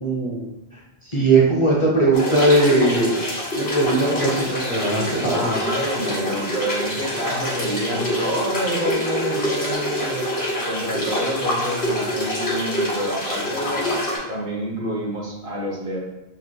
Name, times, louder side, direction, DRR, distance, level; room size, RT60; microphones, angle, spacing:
voice 1, 0.0-3.1 3.6-5.6, right 2 dB, 35° left, -3 dB, 0.7 m, -19 dB
sound 1, 2.1-14.2, left 1 dB, 80° left, 1.5 m, -26 dB
voice 2, 5.3-13.9 14.3-16.0, equal, 60° right, -2 dB, 1.0 m, -28 dB
5.7 x 3.2 x 2.2 m, 0.96 s
omnidirectional pair, 1.0 m